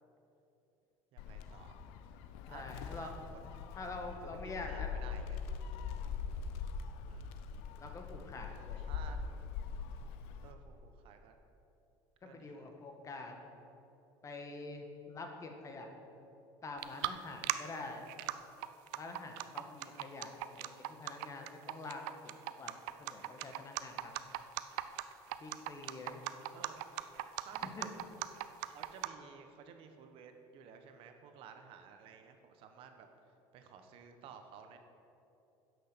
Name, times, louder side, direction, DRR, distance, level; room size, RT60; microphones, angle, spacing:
voice 1, 1.1-1.8 2.5-2.6 2.9-3.4 4.7-5.4 7.1-7.3 8.8-9.3 10.4-11.4 12.2-12.7 26.5-26.8 27.4-27.9 28.6-33.1 33.5-34.8, right 7 dB, 70° right, 6 dB, 1.1 m, -54 dB
Gull seagull, 1.2-10.5, left 6 dB, 80° left, 0.6 m, -42 dB
voice 2, 2.5-3.1 3.7-4.9 7.8-8.8 12.2-13.4 14.2-15.9 16.6-18.0 19.0-20.7 21.0-22.0 22.6-22.7 23.0-24.1 25.4-26.2 27.6-27.9, left 3 dB, 35° left, 3 dB, 1.5 m, -46 dB
sound 1, 16.8-17.1 17.4-17.5 18.1-18.3 18.6-29.1, right 20 dB, 90° right, 0.4 m, -37 dB
10.0 x 6.4 x 6.8 m, 2.9 s
supercardioid pair, 105°, 10 cm